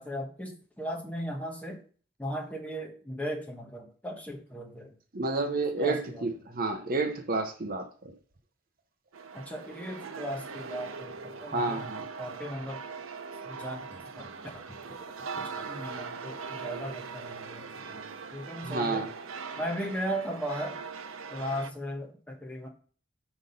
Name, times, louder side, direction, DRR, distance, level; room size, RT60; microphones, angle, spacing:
voice 1, 0.0-1.8 2.2-4.9 5.8-6.2 9.3-11.8 12.2-12.8 13.4-14.8 15.3-18.0 18.3-19.0 19.5-20.8 21.3-22.7, equal, 5° left, 0 dB, 1.3 m, -37 dB
voice 2, 5.1-8.1 11.5-12.0 18.6-19.1, right 3 dB, 45° right, 6 dB, 0.9 m, -30 dB
sound 1, 9.1-21.7, right 5 dB, 90° right, 0.7 m, -41 dB
6.1 x 5.0 x 5.6 m, 0.42 s
head